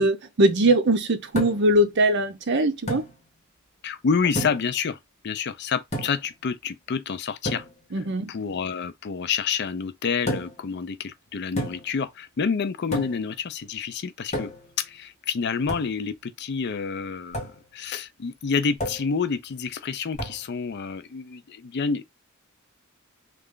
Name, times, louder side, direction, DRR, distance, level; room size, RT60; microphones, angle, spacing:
voice 1, 0.0-3.0 7.9-8.3, right 1 dB, 55° right, 0.7 m, -21 dB
sound 1, 1.4-1.8 2.9-3.1 4.4-4.7 5.9-6.3 7.5-7.7 10.3-10.7 11.6-12.0 12.9-13.3 14.3-14.7 15.7-15.9 17.3-17.6 18.8-19.1 20.2-20.4, equal, 35° left, 1.3 m, -31 dB
voice 2, 3.8-5.0 5.2-7.7 7.9-14.5 14.8-17.4 17.7-22.0, left 5 dB, 55° left, 0.5 m, -28 dB
3.3 x 2.4 x 3.7 m
head